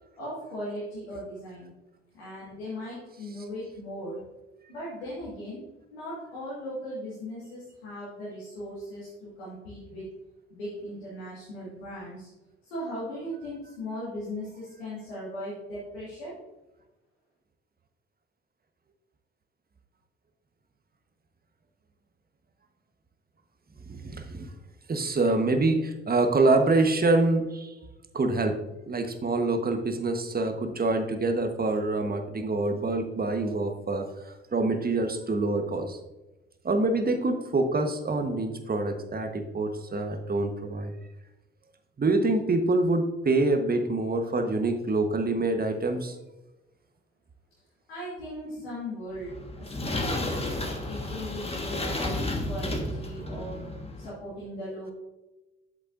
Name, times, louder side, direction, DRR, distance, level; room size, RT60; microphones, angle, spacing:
voice 1, 0.2-1.7 2.1-4.2 4.7-5.6 5.9-10.1 10.5-12.3 12.6-16.4 47.9-50.5 50.9-53.7 54.0-54.9, equal, 90° left, -9 dB, 1.8 m, -38 dB
voice 2, 23.9-24.5 24.9-27.7 28.1-28.6 28.9-36.0 36.6-40.9 42.0-46.2, right 2 dB, 30° right, 6 dB, 1.2 m, -26 dB
sound 1, 49.1-54.1, left 1 dB, 20° left, 1.4 m, -32 dB
8.3 x 7.2 x 2.5 m, 1.0 s
hypercardioid pair, 45°, 30 cm